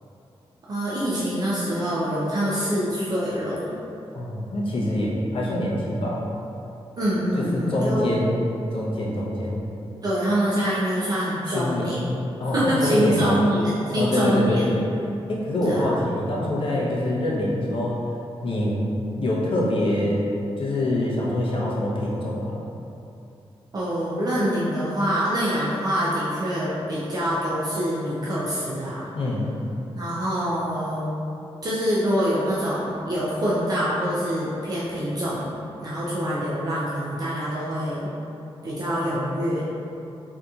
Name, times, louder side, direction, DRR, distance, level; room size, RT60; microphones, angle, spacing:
voice 1, 0.7-3.8 7.0-8.1 10.0-12.1 12.5-14.6 15.6-16.0 23.7-29.1 29.9-31.1 31.6-35.5 35.8-38.1 38.6-39.6, equal, 40° right, -8 dB, 0.4 m, -25 dB
voice 2, 4.1-6.2 7.4-8.4 8.7-9.6 11.5-12.0 12.4-13.4 13.9-14.8 15.3-18.0 18.4-18.9 19.2-22.6 29.1-29.5, left 1 dB, 60° left, -5 dB, 0.6 m, -25 dB
3.9 x 2.7 x 2.3 m, 2.8 s
wide cardioid pair, 145°, 10 cm